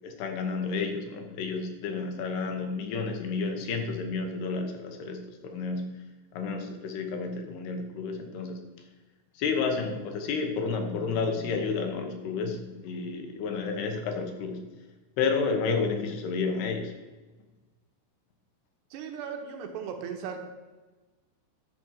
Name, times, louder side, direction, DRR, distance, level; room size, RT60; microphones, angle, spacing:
voice 1, 0.0-5.9 6.3-8.6 9.3-14.6 15.2-16.9, left 4 dB, 75° left, 5 dB, 2.9 m, -31 dB
voice 2, 18.9-20.4, right 7 dB, 80° right, 4 dB, 3.3 m, -37 dB
11.0 x 6.0 x 7.4 m, 1.2 s
omnidirectional pair, 5.1 m